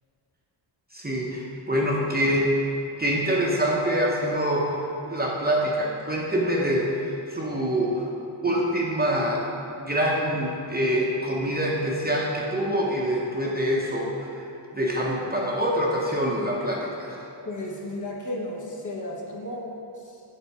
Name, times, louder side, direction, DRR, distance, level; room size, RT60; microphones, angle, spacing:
voice 1, 0.9-2.6 3.0-4.8 5.1-8.1 8.4-9.4 9.8-14.5 14.7-17.2, equal, 20° right, -3 dB, 0.8 m, -25 dB
voice 2, 17.4-20.2, left 1 dB, 40° left, -2 dB, 1.1 m, -34 dB
7.1 x 4.3 x 5.6 m, 2.7 s
wide cardioid pair, 120°, 47 cm